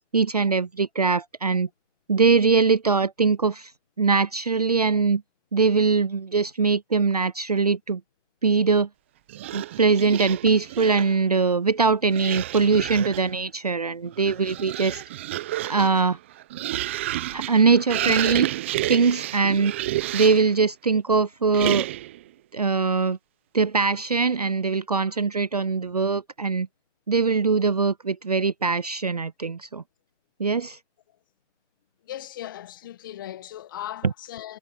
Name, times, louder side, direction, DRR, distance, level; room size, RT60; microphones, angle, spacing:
voice 1, 0.1-1.7 2.1-3.7 4.0-5.2 5.5-8.0 8.4-8.9 9.5-15.0 15.7-16.2 17.3-18.5 18.9-19.7 20.1-21.9 22.5-23.2 23.5-26.7 27.1-29.8 30.4-30.8, right 4 dB, 35° right, 0.7 m, -22 dB
sound 1, 9.3-11.2 12.1-13.3 14.1-20.6 21.5-22.2, right 15 dB, 10° right, 1.0 m, -30 dB
voice 2, 32.0-34.6, left 12 dB, 15° left, 1.6 m, -37 dB
figure-of-eight pair, 155°, 36 cm